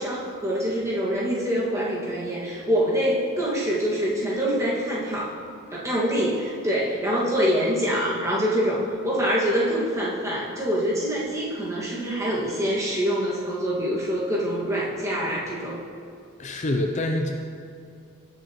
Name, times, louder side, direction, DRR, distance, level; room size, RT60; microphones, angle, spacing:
voice 1, 0.0-5.3 5.7-15.8, equal, 15° right, -6 dB, 1.9 m, -25 dB
voice 2, 16.4-17.3, left 1 dB, 35° left, 3 dB, 0.5 m, -25 dB
17.0 x 6.8 x 3.1 m, 2.4 s
head